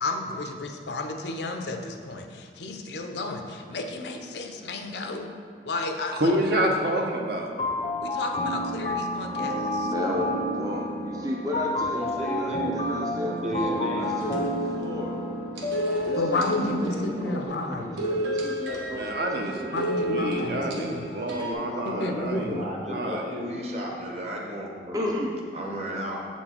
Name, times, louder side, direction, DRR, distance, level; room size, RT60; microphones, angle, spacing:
voice 1, 0.0-5.3 5.7-6.4 8.0-9.9 16.1-18.0 19.7-21.2 21.9-22.7, left 2 dB, 75° left, 4 dB, 0.6 m, -32 dB
voice 2, 6.1-7.5 18.9-22.5 22.9-23.4, right 1 dB, 60° right, 2 dB, 0.7 m, -28 dB
sound 1, 7.6-17.4, left 1 dB, 35° left, 0.6 m, -30 dB
voice 3, 9.8-15.2 16.1-19.9 21.2-23.6 24.9-25.4, left 1 dB, 20° right, -1 dB, 0.5 m, -34 dB
voice 4, 11.9-12.8 13.2-14.1 22.4-25.0 25.5-26.3, right 1 dB, 35° right, -1 dB, 0.9 m, -33 dB
sound 2, 14.0-17.2 18.0-21.5, equal, 85° right, 1.0 m, -32 dB
7.1 x 4.4 x 4.3 m, 2.1 s
head